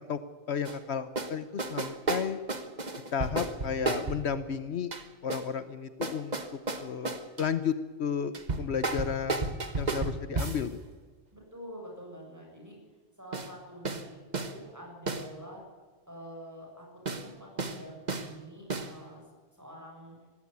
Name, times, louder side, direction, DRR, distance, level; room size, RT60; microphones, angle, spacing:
voice 1, 0.5-2.4 3.1-4.9 5.2-6.3 6.8-9.5 9.7-10.8, left 7 dB, 70° left, 12 dB, 1.1 m, -33 dB
sound 1, 0.6-0.8 1.2-1.3 1.6-4.3 4.9-5.5 6.0-7.5 8.3-10.7 13.3-13.5 13.8-14.0 14.3-14.5 15.1-15.3 17.0-17.3 17.6-17.8 18.1-18.3 18.7-18.9, right 3 dB, 40° right, 1.4 m, -32 dB
voice 2, 11.3-12.8 13.2-14.2 14.4-15.6 16.1-19.3 19.5-20.2, equal, 15° right, -1 dB, 7.6 m, -46 dB
19.0 x 16.0 x 9.6 m, 1.4 s
omnidirectional pair, 1.2 m